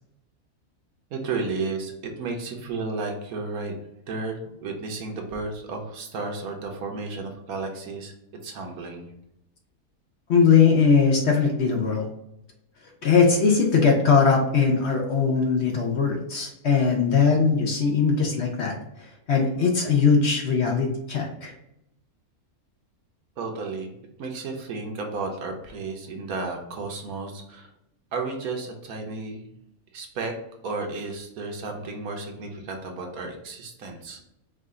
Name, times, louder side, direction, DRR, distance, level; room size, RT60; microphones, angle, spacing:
voice 1, 1.1-3.7 4.1-8.1 8.4-9.1 23.4-27.7 28.1-29.5 29.9-30.3 30.6-34.2, right 3 dB, 75° right, 2 dB, 1.3 m, -33 dB
voice 2, 10.3-12.1 13.0-18.7 19.3-21.5, left 5 dB, 60° left, 1 dB, 0.8 m, -20 dB
4.9 x 2.4 x 3.6 m, 0.82 s
omnidirectional pair, 1.5 m